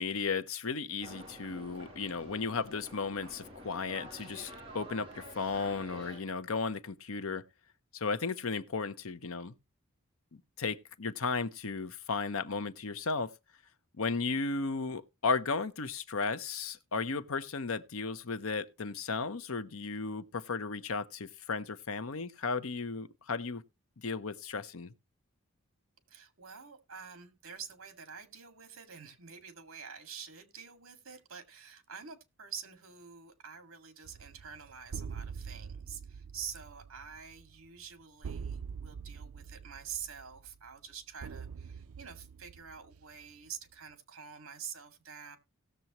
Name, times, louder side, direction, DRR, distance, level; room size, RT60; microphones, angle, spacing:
voice 1, 0.0-7.4 7.9-9.5 10.6-13.3 14.0-23.6 24.0-24.9, left 4 dB, 75° left, 0.8 m, -35 dB
sound 1, 1.0-6.2, right 1 dB, 25° right, 7.9 m, -49 dB
voice 2, 26.1-45.4, right 7 dB, 70° right, 2.1 m, -47 dB
sound 2, 34.0-43.5, right 6 dB, 85° right, 0.4 m, -45 dB
18.0 x 6.9 x 3.0 m
head